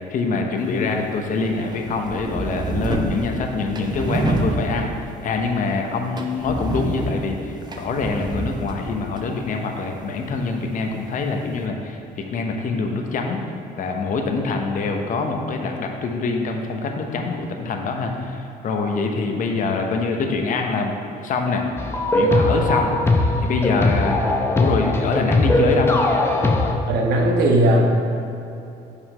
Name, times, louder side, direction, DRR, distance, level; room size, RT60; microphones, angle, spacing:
voice 1, 0.1-4.9 5.2-13.4 13.8-20.9 21.2-21.7 22.1-22.9 23.4-24.2 24.5-26.0, left 4 dB, 50° left, 3 dB, 0.8 m, -24 dB
sound 1, 0.6-11.7, right 2 dB, 25° right, 0.7 m, -30 dB
sound 2, 21.8-26.7, left 2 dB, 15° left, 0.7 m, -19 dB
voice 2, 26.9-27.8, right 1 dB, 80° right, 1 dB, 1.1 m, -17 dB
5.6 x 5.0 x 5.5 m, 2.8 s
cardioid pair, 110°, 17 cm